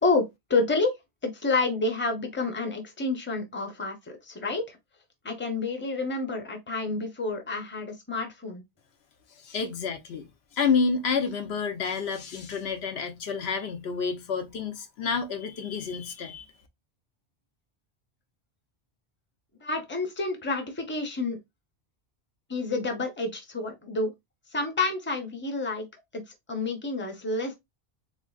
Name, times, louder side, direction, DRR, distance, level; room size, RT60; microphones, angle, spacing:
voice 1, 0.0-1.0 1.2-3.9 4.2-4.8 5.2-8.6 19.6-21.4 22.5-24.1 24.5-25.9 26.1-27.6, left 3 dB, 10° left, 0.7 m, -29 dB
voice 2, 9.4-10.3 10.5-16.5, left 5 dB, 85° left, 1.0 m, -29 dB
3.6 x 3.2 x 2.3 m
omnidirectional pair, 1.1 m